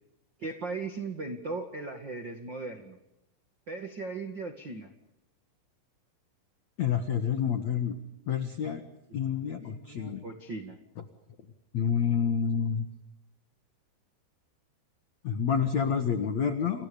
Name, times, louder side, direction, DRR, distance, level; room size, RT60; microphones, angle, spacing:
voice 1, 0.4-3.0 3.7-4.9 9.6-10.8, right 3 dB, 65° right, 6 dB, 1.1 m, -38 dB
voice 2, 6.8-8.0 8.3-8.8 9.1-10.2 11.7-12.9 15.2-16.9, left 7 dB, 75° left, 8 dB, 1.6 m, -28 dB
30.0 x 29.0 x 5.2 m, 0.84 s
omnidirectional pair, 5.9 m